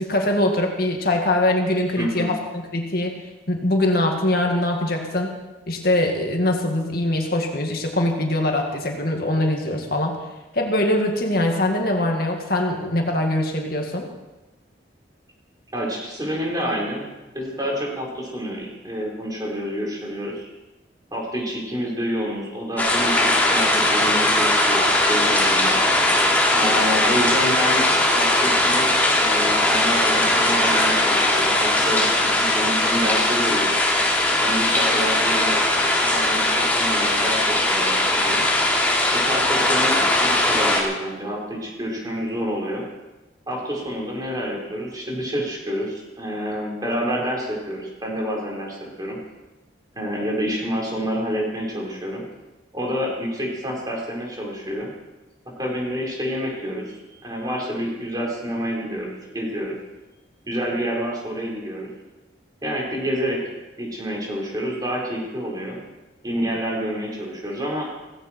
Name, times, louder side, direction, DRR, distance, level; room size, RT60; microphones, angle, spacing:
voice 1, 0.0-3.2 3.5-5.3 5.7-10.2 10.5-14.1, left 1 dB, 55° left, 2 dB, 2.0 m, -22 dB
voice 2, 2.0-2.3 15.7-17.1 17.3-20.5 21.1-25.8 26.5-33.7 34.4-35.6 36.0-38.4 39.1-42.8 43.5-49.2 50.0-52.2 52.7-54.9 55.6-59.7 60.5-61.9 62.6-63.4 63.8-65.8 66.2-67.9, equal, 20° right, -2 dB, 4.4 m, -28 dB
sound 1, 22.8-40.8, left 1 dB, 10° left, 2.7 m, -19 dB
17.5 x 16.0 x 4.5 m, 1.1 s
head